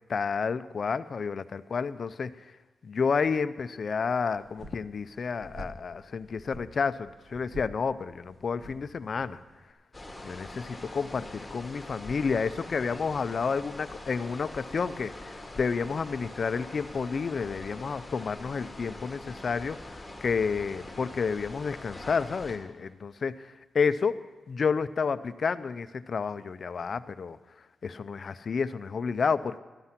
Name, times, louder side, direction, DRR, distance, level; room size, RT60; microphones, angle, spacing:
voice 1, 0.1-2.3 2.8-9.4 10.2-24.2 24.5-27.4 27.8-29.6, left 5 dB, 50° left, 14 dB, 0.5 m, -30 dB
sound 1, 4.3-9.7, right 1 dB, 40° right, 1.3 m, -48 dB
sound 2, 9.9-22.6, left 1 dB, 15° left, 1.9 m, -43 dB
13.0 x 11.0 x 5.8 m, 1.2 s
wide cardioid pair, 135°, 0 cm